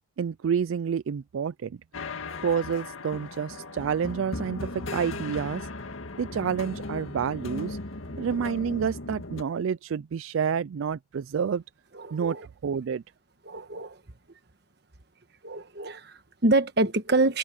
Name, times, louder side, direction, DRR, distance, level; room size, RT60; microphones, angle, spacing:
voice 1, 0.2-1.8 2.4-5.7 6.2-7.8 8.2-11.6 12.1-12.4 12.6-13.0, right 7 dB, 80° right, 0.4 m, -29 dB
sound 1, 1.9-9.4, left 2 dB, 85° left, 1.9 m, -37 dB
voice 2, 11.9-12.5 13.5-14.0 15.4-17.4, right 2 dB, 55° right, 1.3 m, -26 dB
head